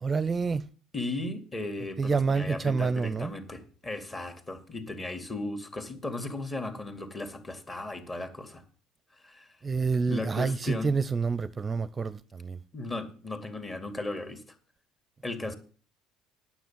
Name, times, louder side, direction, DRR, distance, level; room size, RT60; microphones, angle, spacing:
voice 1, 0.0-0.6 2.0-3.3 9.6-12.6, right 4 dB, 30° right, 0.6 m, -28 dB
voice 2, 0.9-8.6 9.2-9.6 10.1-10.9 12.7-14.4 15.2-15.5, left 2 dB, 25° left, 2.2 m, -36 dB
9.4 x 7.3 x 7.5 m
hypercardioid pair, 70°, 0 cm